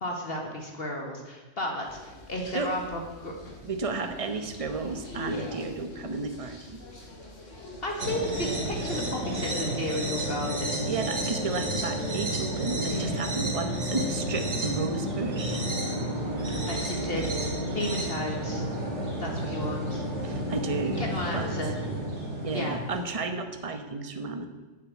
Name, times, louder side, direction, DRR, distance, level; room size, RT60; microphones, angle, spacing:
voice 1, 0.0-3.3 7.8-10.8 12.9-13.2 16.5-18.7 19.2-20.0 20.8-21.8 22.5-22.8, left 1 dB, 50° left, 1 dB, 1.8 m, -33 dB
sound 1, 1.8-9.2, left 1 dB, 85° left, 2.9 m, -44 dB
voice 2, 3.6-6.8 10.8-15.6 20.2-21.0 21.3-21.5 22.4-24.5, right 3 dB, 30° right, 7 dB, 1.1 m, -32 dB
sound 2, 8.0-23.1, right 1 dB, 65° right, 2.9 m, -31 dB
9.2 x 8.5 x 8.5 m, 1.2 s
omnidirectional pair, 1.2 m